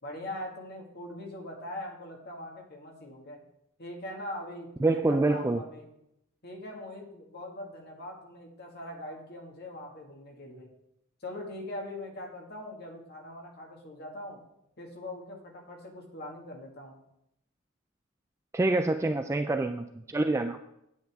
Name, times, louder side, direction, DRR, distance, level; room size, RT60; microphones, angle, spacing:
voice 1, 0.0-3.4 3.8-5.9 6.4-10.7 11.2-14.4 14.8-17.0, left 1 dB, 50° left, 0 dB, 2.0 m, -42 dB
voice 2, 4.8-5.6 18.5-20.6, right 2 dB, 15° right, 6 dB, 0.3 m, -26 dB
9.3 x 8.9 x 3.6 m, 0.81 s
head